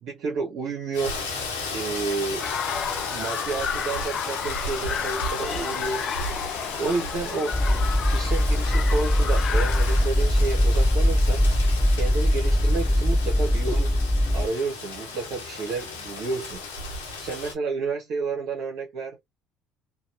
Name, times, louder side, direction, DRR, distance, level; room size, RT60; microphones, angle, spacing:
voice 1, 0.0-1.2 1.7-2.5 3.1-6.1 6.8-7.5 8.0-11.4 12.0-14.0 14.3-16.7 17.2-19.2, right 4 dB, 65° right, 1.0 m, -30 dB
Rain, 0.9-17.5, left 3 dB, 85° left, 1.0 m, -35 dB
sound 1, 2.4-10.1, left 7 dB, 50° left, 0.4 m, -32 dB
sound 2, 7.5-14.5, equal, ahead, 0.6 m, -21 dB
2.9 x 2.3 x 2.5 m
hypercardioid pair, 60°, 0 cm